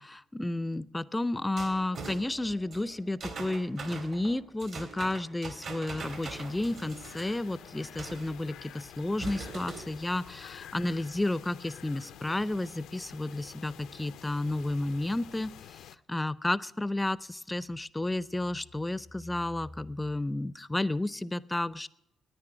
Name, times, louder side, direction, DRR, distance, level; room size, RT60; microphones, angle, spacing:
voice 1, 0.0-15.8 16.1-21.9, left 2 dB, 15° left, 19 dB, 0.4 m, -32 dB
sound 1, 1.6-8.4 9.0-10.0, right 4 dB, 60° right, 2.2 m, -43 dB
sound 2, 6.0-16.0, left 11 dB, 85° left, 0.4 m, -49 dB
9.8 x 9.4 x 9.5 m, 0.84 s
cardioid pair, 90°, 0 cm